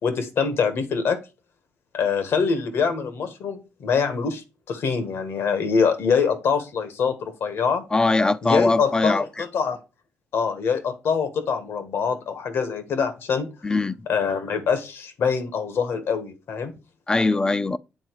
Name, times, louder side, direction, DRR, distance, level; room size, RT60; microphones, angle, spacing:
voice 1, 0.0-1.2 1.9-7.8 8.4-9.8 10.3-13.5 14.1-16.7, left 6 dB, 70° left, 1.5 m, -24 dB
voice 2, 7.9-9.2 13.6-14.0 17.1-17.8, left 3 dB, 20° left, 0.5 m, -21 dB
8.9 x 4.0 x 4.6 m
cardioid pair, 105°, 4 cm